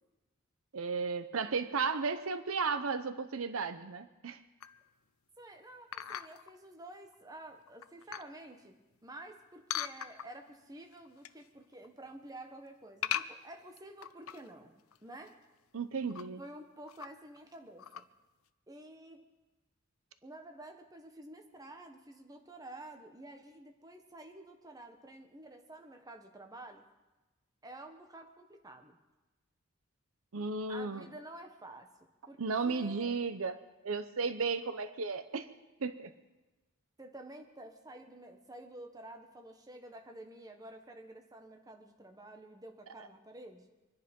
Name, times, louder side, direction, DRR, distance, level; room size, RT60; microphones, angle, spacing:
voice 1, 0.7-4.4 15.7-16.4 30.3-31.1 32.4-35.5 35.8-36.1, right 4 dB, 75° right, 11 dB, 0.8 m, -34 dB
sound 1, 4.6-4.9 5.9-6.5 7.1-7.2 7.7-8.4 9.7-10.5 10.9-11.5 11.7-12.1 13.0-14.6 14.9-15.0 15.3-15.4 15.9-16.3 16.9-17.4 17.8-18.0, left 10 dB, 75° left, 0.6 m, -39 dB
voice 2, 5.4-15.4 16.4-18.0 18.7-19.2 20.2-26.8 27.6-29.0 30.7-31.9 32.3-33.3 37.0-43.7, right 1 dB, 15° right, 4 dB, 1.2 m, -50 dB
24.5 x 10.5 x 5.3 m, 1.1 s
head